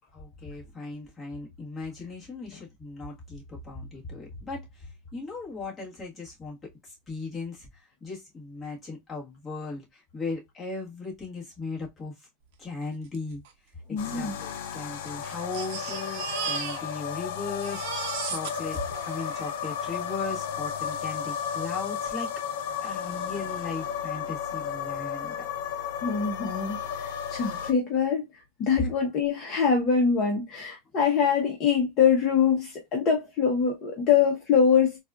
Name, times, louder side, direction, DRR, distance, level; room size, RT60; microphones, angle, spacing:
voice 1, 0.1-6.6 6.8-12.1 12.6-13.4 13.9-22.3 22.8-25.5 28.8-28.9, left 3 dB, 15° left, 1.5 m, -37 dB
Crying sobbing, 13.1-13.2 13.4-13.5 14.3-17.2 17.5-20.0 20.9-21.0 21.3-21.4, right 7 dB, 60° right, 0.8 m, -37 dB
voice 2, 13.9-14.4 26.0-28.2 28.6-35.0, left 6 dB, 40° left, 0.9 m, -24 dB
sound 1, 14.0-27.7, left 8 dB, 70° left, 0.6 m, -33 dB
4.1 x 2.4 x 2.4 m
supercardioid pair, 140°, 0 cm